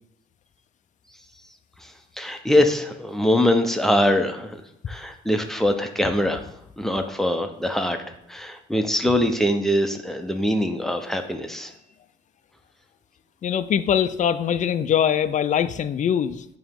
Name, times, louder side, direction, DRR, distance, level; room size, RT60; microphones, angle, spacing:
voice 1, 1.8-4.6 4.9-6.4 6.8-8.0 8.3-11.7, left 1 dB, ahead, 5 dB, 0.7 m, -23 dB
voice 2, 13.4-16.5, left 9 dB, 40° left, 12 dB, 0.4 m, -22 dB
9.0 x 3.0 x 3.6 m, 0.80 s
cardioid pair, 90°, 20 cm